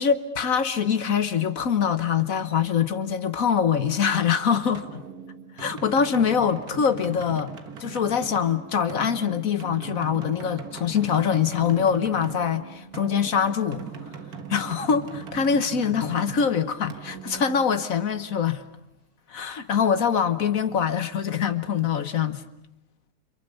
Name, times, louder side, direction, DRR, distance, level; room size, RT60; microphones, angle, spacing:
voice 1, 0.0-5.0 5.6-7.5 7.8-13.8 14.5-18.6 19.3-22.4, left 7 dB, 60° left, 1.5 m, -24 dB
sound 1, 4.7-18.3, right 6 dB, 65° right, 2.0 m, -40 dB
29.5 x 26.5 x 6.8 m
omnidirectional pair, 1.7 m